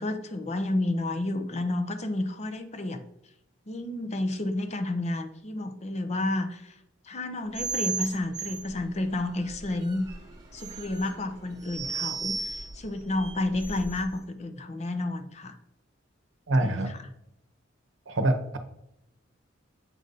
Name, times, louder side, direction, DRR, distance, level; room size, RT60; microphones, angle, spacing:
voice 1, 0.0-3.0 3.7-6.8 7.0-10.1 10.5-15.6 16.5-17.0, left 2 dB, 35° left, 9 dB, 0.5 m, -31 dB
sound 1, 7.5-14.2, right 5 dB, 20° right, 1.0 m, -36 dB
voice 2, 16.5-17.0 18.1-18.6, right 1 dB, 75° right, 7 dB, 0.8 m, -25 dB
7.5 x 2.6 x 5.2 m, 0.82 s
head